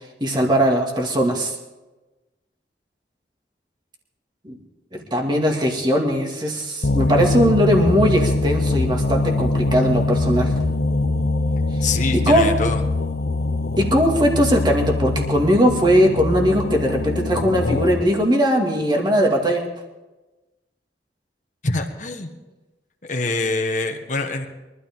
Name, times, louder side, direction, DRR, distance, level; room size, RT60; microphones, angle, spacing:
voice 1, 0.2-1.5 4.4-4.6 4.9-10.5 11.8-12.5 13.8-19.6, equal, 25° right, 1 dB, 2.1 m, -19 dB
sound 1, 6.8-18.1, left 2 dB, 65° left, 0.9 m, -23 dB
voice 2, 11.8-12.8 21.6-22.3 23.1-24.5, left 3 dB, 45° left, 3 dB, 1.4 m, -25 dB
23.0 x 12.5 x 3.7 m, 1.1 s
head